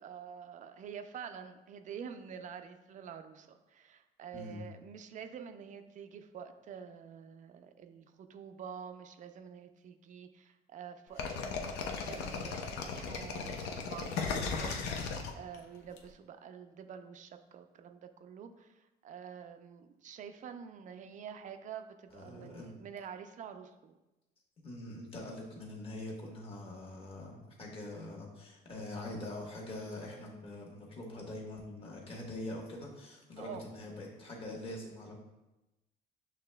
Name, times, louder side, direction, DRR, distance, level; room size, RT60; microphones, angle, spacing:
voice 1, 0.0-24.0 33.4-33.6, right 7 dB, 50° right, 8 dB, 0.4 m, -48 dB
sound 1, 11.2-16.0, left 5 dB, 80° left, 0.6 m, -36 dB
voice 2, 22.1-22.7 24.6-35.2, left 1 dB, 35° left, -2 dB, 1.3 m, -44 dB
6.8 x 3.2 x 2.2 m, 1.0 s
cardioid pair, 110°, 17 cm